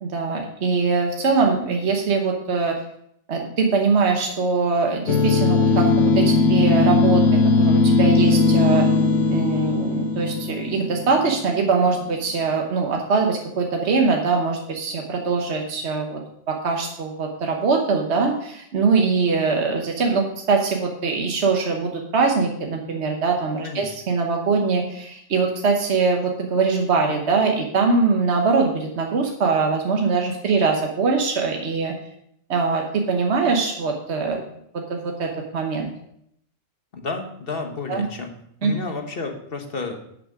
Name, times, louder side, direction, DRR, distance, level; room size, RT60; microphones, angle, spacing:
voice 1, 0.0-2.8 3.3-8.9 9.3-16.2 16.5-31.9 32.5-34.4 34.9-35.9 37.9-38.1 38.6-38.7, right 4 dB, 65° right, 2 dB, 1.4 m, -22 dB
sound 1, 5.1-11.7, left 3 dB, 85° left, 1.1 m, -18 dB
voice 2, 23.6-24.0 36.9-38.3 38.6-40.0, left 4 dB, 50° left, 4 dB, 1.4 m, -31 dB
11.5 x 6.2 x 4.9 m, 0.72 s
omnidirectional pair, 1.2 m